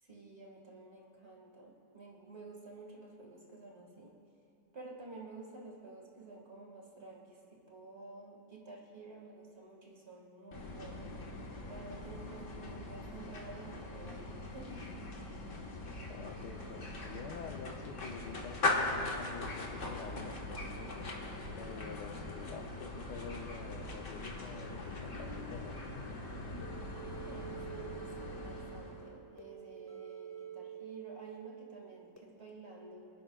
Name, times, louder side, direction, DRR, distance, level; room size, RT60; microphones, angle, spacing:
voice 1, 0.0-4.2 4.7-11.2 11.7-14.9 27.2-33.1, right 3 dB, 40° right, -1 dB, 2.0 m, -51 dB
sound 1, 10.5-29.1, left 2 dB, 45° left, 1.6 m, -40 dB
voice 2, 16.1-21.1 21.6-26.1, left 6 dB, 80° left, 7 dB, 1.3 m, -48 dB
sound 2, 26.6-32.2, right 9 dB, 15° left, 1.1 m, -48 dB
28.5 x 10.5 x 2.3 m, 2.6 s
omnidirectional pair, 1.8 m